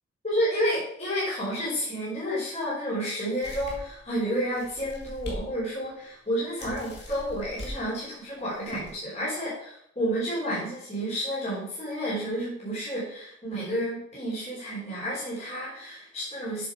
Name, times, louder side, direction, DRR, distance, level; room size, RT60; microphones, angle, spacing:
voice 1, 0.2-16.7, equal, 30° left, -8 dB, 3.6 m, -30 dB
sound 1, 3.4-4.0 4.5-5.4 5.8-5.9 6.6-7.7 8.5-8.9, equal, 55° left, 2.2 m, -40 dB
7.9 x 6.8 x 4.9 m, 0.69 s
head